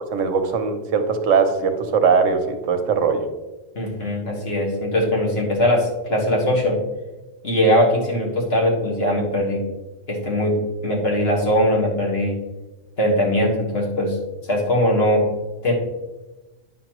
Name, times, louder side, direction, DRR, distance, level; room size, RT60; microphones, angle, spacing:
voice 1, 0.0-3.2, right 5 dB, 85° right, 7 dB, 1.2 m, -20 dB
voice 2, 3.8-6.8 7.4-9.6 10.1-10.6 10.8-12.4 13.0-14.2 14.5-15.3 15.6-15.7, equal, 55° left, -3 dB, 1.8 m, -20 dB
9.2 x 5.8 x 3.0 m, 1.1 s
omnidirectional pair, 1.3 m